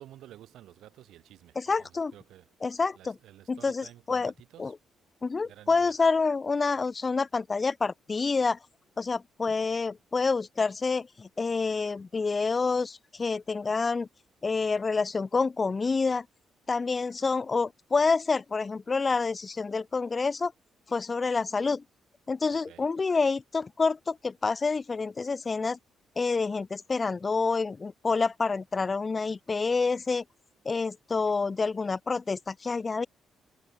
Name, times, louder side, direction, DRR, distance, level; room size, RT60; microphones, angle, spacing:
voice 1, 0.0-2.5 3.0-4.7 5.4-6.0 22.5-22.9, right 13 dB, 80° right, 7.1 m, -52 dB
voice 2, 1.6-2.1 2.6-3.1 3.5-4.3 4.6-4.7 5.2-8.6 9.0-14.1 14.4-16.2 16.7-20.5 20.9-21.8 22.3-25.8 26.2-30.2 30.7-33.1, left 4 dB, 30° left, 0.6 m, -28 dB
cardioid pair, 90°, 0 cm